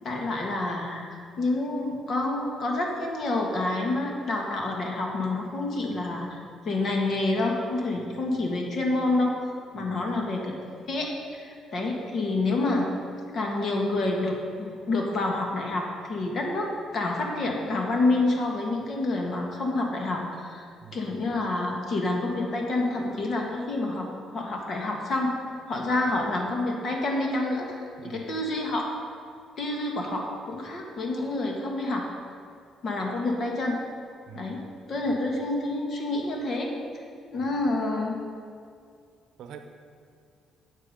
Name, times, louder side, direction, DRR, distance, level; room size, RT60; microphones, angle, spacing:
voice 1, 0.0-9.3 9.7-10.5 10.9-12.9 13.3-25.3 25.7-28.9 29.6-32.1 32.8-33.8 34.3-34.6 34.9-36.7 37.3-38.2, left 2 dB, 40° left, 0 dB, 1.9 m, -28 dB
voice 2, 20.8-21.3 28.0-28.4 34.3-35.4 37.4-37.7 39.4-39.6, right 6 dB, 65° right, 7 dB, 0.9 m, -46 dB
13.0 x 8.2 x 5.3 m, 2.3 s
cardioid pair, 155°, 0 cm